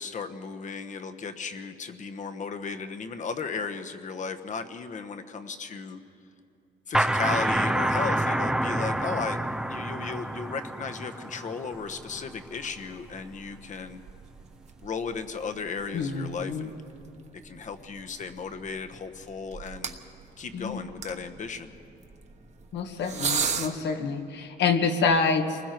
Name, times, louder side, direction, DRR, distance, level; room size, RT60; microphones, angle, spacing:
voice 1, 0.0-6.0 6.9-9.4 9.7-14.0 14.8-16.7 17.4-20.0 20.4-21.7, left 5 dB, 45° left, 8 dB, 1.1 m, -35 dB
sound 1, 6.9-12.4, right 1 dB, 5° right, 0.5 m, -28 dB
sound 2, 11.7-23.7, right 5 dB, 40° right, 1.3 m, -39 dB
voice 2, 15.9-16.7 20.5-20.8 22.7-25.6, left 4 dB, 75° left, 6 dB, 1.6 m, -27 dB
29.0 x 20.0 x 4.5 m, 2.5 s
cardioid pair, 140°, 18 cm